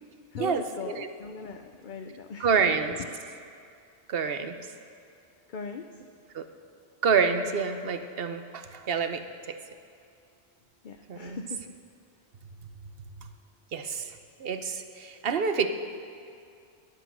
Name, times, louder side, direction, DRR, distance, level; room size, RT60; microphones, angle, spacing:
voice 1, 0.3-2.8 5.5-5.9 10.8-11.7, left 5 dB, 55° left, 5 dB, 0.7 m, -39 dB
voice 2, 2.4-2.9 4.1-4.6 6.3-6.4 7.0-9.2 9.5-9.6 11.1-11.4 13.7-14.1 14.4-15.7, right 6 dB, 60° right, 8 dB, 1.0 m, -27 dB
21.0 x 8.2 x 6.2 m, 2.4 s
omnidirectional pair, 1.1 m